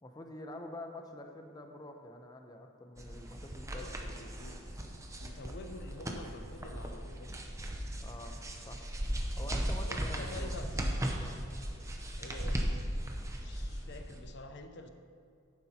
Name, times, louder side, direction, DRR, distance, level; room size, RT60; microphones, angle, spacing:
voice 1, 0.0-4.2 8.0-8.4 8.7-8.8 9.4-10.7 11.0-11.4, left 1 dB, 20° left, 4 dB, 0.6 m, -47 dB
sound 1, 3.0-14.2, equal, 15° right, 0.7 m, -37 dB
voice 2, 3.5-4.9 5.2-7.3 9.9-10.7 12.2-12.6 13.2-14.9, left 2 dB, 55° left, 7 dB, 0.6 m, -48 dB
11.0 x 9.3 x 2.9 m, 2.4 s
head